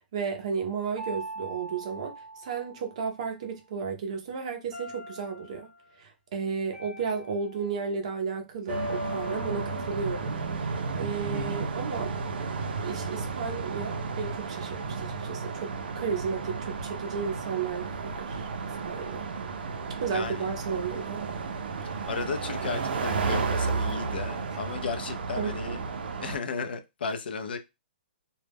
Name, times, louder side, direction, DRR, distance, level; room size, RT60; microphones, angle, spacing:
voice 1, 0.0-2.1 2.4-5.7 6.0-12.1 12.8-18.5 18.8-19.3 20.0-21.3 25.4-25.8, right 6 dB, 40° right, 0.5 m, -33 dB
sound 1, 1.0-3.3 4.7-5.7 6.7-8.0 8.7-11.0, left 1 dB, 10° left, 0.9 m, -40 dB
sound 2, 8.7-26.4, right 4 dB, 90° right, 0.5 m, -33 dB
voice 2, 20.1-20.5 22.1-25.8 26.2-27.6, left 5 dB, 75° left, 0.5 m, -34 dB
2.2 x 2.0 x 3.3 m
hypercardioid pair, 175°, 5 cm